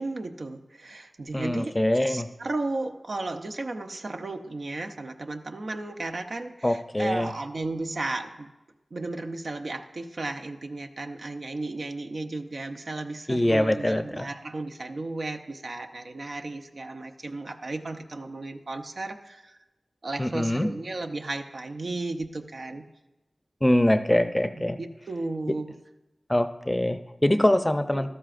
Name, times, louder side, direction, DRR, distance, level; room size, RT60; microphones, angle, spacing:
voice 1, 0.0-1.8 2.1-8.5 8.9-19.5 20.0-22.9 24.6-25.7 27.9-28.1, right 2 dB, 70° right, 5 dB, 0.7 m, -34 dB
voice 2, 1.3-2.3 6.6-7.3 13.3-14.3 20.2-20.7 23.6-24.8 26.3-28.1, left 1 dB, 20° left, 9 dB, 0.5 m, -23 dB
13.0 x 12.5 x 2.5 m, 0.99 s
cardioid pair, 50°, 0 cm